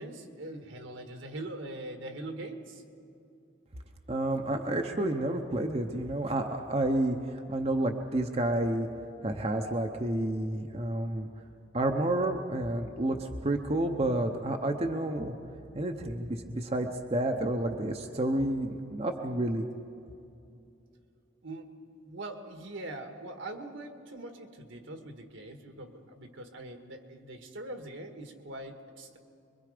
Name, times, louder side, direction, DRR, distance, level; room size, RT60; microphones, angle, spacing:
voice 1, 0.0-2.8 21.4-21.7 22.0-29.2, right 1 dB, 70° right, 5 dB, 1.7 m, -42 dB
voice 2, 4.1-8.9 9.2-11.3 11.7-15.3 15.7-19.6, right 1 dB, 30° right, 3 dB, 0.8 m, -30 dB
25.0 x 22.5 x 5.1 m, 2.6 s
head